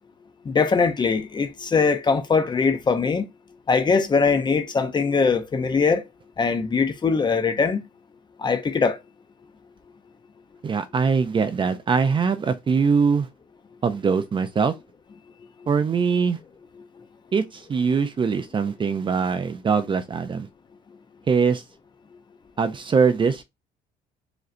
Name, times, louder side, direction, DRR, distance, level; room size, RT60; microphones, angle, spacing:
voice 1, 0.5-3.2 3.7-6.0 6.4-7.8 8.4-9.0, left 5 dB, 25° left, 0.7 m, -21 dB
voice 2, 10.6-13.3 13.8-14.7 15.7-16.4 17.3-20.5 21.3-21.6 22.6-23.4, right 5 dB, 30° right, 0.5 m, -22 dB
4.9 x 3.1 x 2.6 m
cardioid pair, 110°, 17 cm